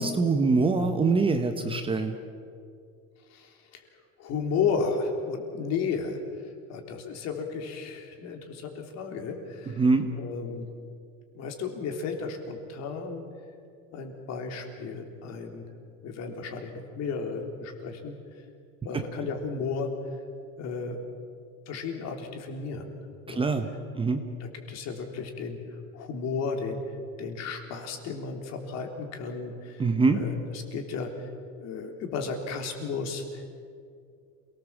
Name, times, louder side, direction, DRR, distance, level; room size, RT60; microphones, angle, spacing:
voice 1, 0.0-2.1 9.7-10.1 18.9-19.0 23.4-23.7 23.9-24.2 29.8-30.2, right 4 dB, 15° right, 6 dB, 1.2 m, -24 dB
voice 2, 3.3-3.8 4.2-6.2 6.7-9.8 10.2-10.7 11.4-13.2 13.9-15.7 16.0-18.2 18.9-19.9 20.6-21.0 21.7-22.9 23.3-23.5 24.7-25.6 25.9-26.8 27.2-29.8 30.1-33.5, left 5 dB, 50° left, 3 dB, 3.5 m, -33 dB
27.5 x 19.0 x 7.4 m, 2.3 s
cardioid pair, 150°, 35 cm